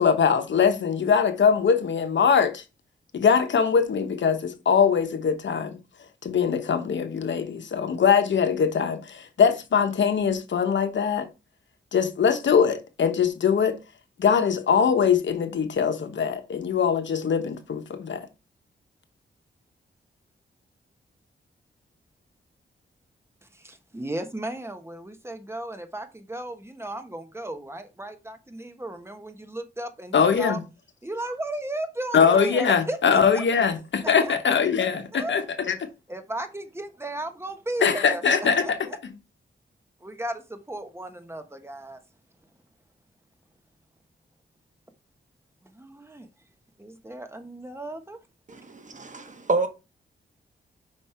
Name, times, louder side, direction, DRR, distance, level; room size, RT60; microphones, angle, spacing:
voice 1, 0.0-2.6 3.1-5.8 6.2-11.3 11.9-13.8 14.2-18.3 30.1-30.6 32.1-35.7 37.8-38.6, left 6 dB, 70° left, 1.1 m, -22 dB
voice 2, 23.4-30.6 31.0-33.4 34.0-34.6 35.1-35.4 36.1-39.0 40.0-42.0 45.6-46.3 46.8-48.2, right 1 dB, 15° right, 1.2 m, -35 dB
voice 3, 48.5-49.7, right 3 dB, 40° right, 1.3 m, -28 dB
5.4 x 5.3 x 4.4 m
wide cardioid pair, 95°, 20 cm